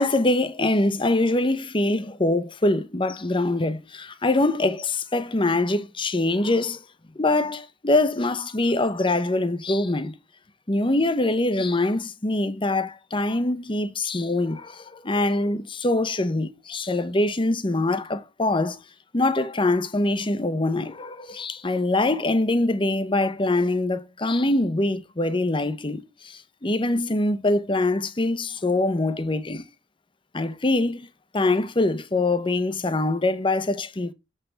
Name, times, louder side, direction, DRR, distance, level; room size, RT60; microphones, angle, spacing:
voice 1, 0.0-6.8 7.2-10.1 10.7-18.8 19.1-29.7 30.3-31.1 31.3-34.1, left 2 dB, 30° left, 0.9 m, -24 dB
7.5 x 5.6 x 6.9 m
head